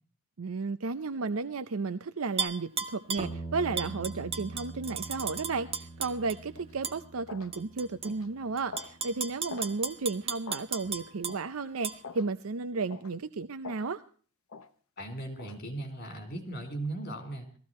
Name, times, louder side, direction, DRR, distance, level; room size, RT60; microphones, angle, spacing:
voice 1, 0.4-14.0, right 4 dB, 80° right, 12 dB, 0.6 m, -33 dB
Tap / Glass, 2.4-3.3 3.8-6.4 6.8-7.0 7.5-8.1 8.6-11.4 11.8-12.0, right 6 dB, 30° right, 1.2 m, -34 dB
sound 1, 3.2-11.5, right 3 dB, 5° right, 4.6 m, -46 dB
sound 2, 6.6-6.7 7.3-7.5 8.1-8.3 8.7-9.0 9.5-9.7 10.5-10.7 11.3-11.5 12.0-12.3 12.9-13.1 13.6-13.9 14.5-14.7 15.4-15.6, left 5 dB, 75° left, 1.0 m, -44 dB
voice 2, 15.0-17.5, right 2 dB, 50° left, 5 dB, 4.0 m, -37 dB
17.5 x 15.0 x 4.2 m, 0.43 s
head